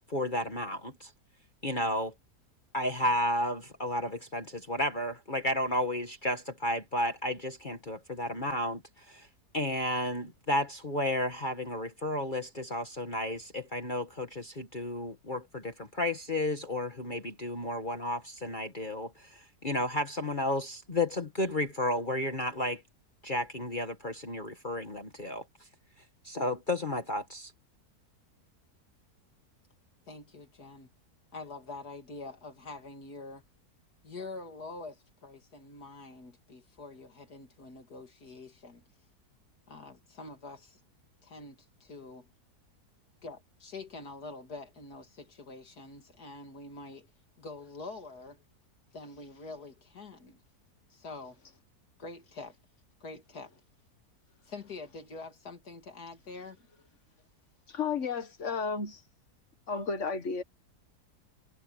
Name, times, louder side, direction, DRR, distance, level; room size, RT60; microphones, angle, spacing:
voice 1, 0.1-1.1 1.6-2.1 2.7-8.8 9.1-9.3 9.5-22.8 23.2-25.4 26.2-27.5, left 1 dB, 30° left, 1.8 m, -32 dB
voice 2, 30.1-30.9 31.3-33.4 34.0-38.8 39.7-40.8 41.2-42.3 43.2-47.1 47.4-48.4 48.9-50.4 50.9-51.4 52.0-52.5 53.0-53.5 54.4-56.6, left 3 dB, 70° left, 3.0 m, -45 dB
voice 3, 57.7-59.0 59.7-60.4, left 5 dB, 45° left, 1.9 m, -32 dB
omnidirectional pair, 1.7 m